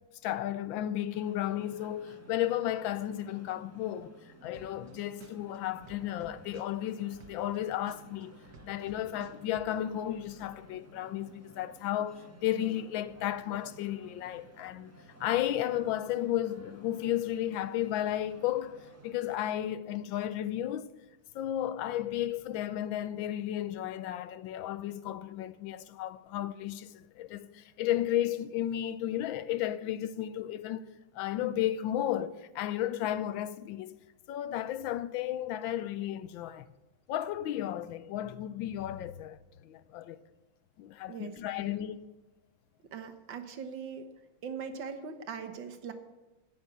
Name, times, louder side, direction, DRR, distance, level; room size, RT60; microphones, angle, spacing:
voice 1, 0.2-4.1 4.4-8.4 8.6-14.9 15.2-20.9 21.3-30.8 31.1-34.0 34.3-36.7 37.1-40.2 40.8-42.0, left 12 dB, 80° left, 1.4 m, -33 dB
sound 1, 1.1-19.3, right 2 dB, 10° right, 0.9 m, -56 dB
sound 2, 4.5-4.9 5.2-7.6 7.9-9.7, right 6 dB, 45° right, 1.4 m, -51 dB
voice 2, 42.9-44.1 44.4-45.9, right 6 dB, 70° right, 1.8 m, -40 dB
10.0 x 8.7 x 8.2 m
omnidirectional pair, 2.1 m